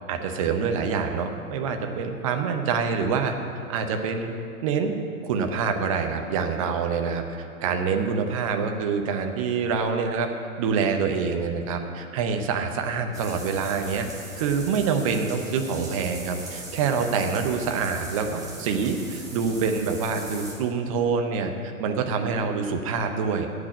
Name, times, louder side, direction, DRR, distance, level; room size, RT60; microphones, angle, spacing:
voice 1, 0.1-3.3 3.7-4.3 4.6-5.0 5.2-10.3 10.6-14.1 14.4-21.5 21.8-23.5, right 5 dB, 25° right, 5 dB, 0.7 m, -26 dB
sound 1, 13.1-20.5, right 1 dB, 10° right, 1.4 m, -40 dB
8.4 x 7.8 x 8.7 m, 2.6 s
figure-of-eight pair, 115°, 43 cm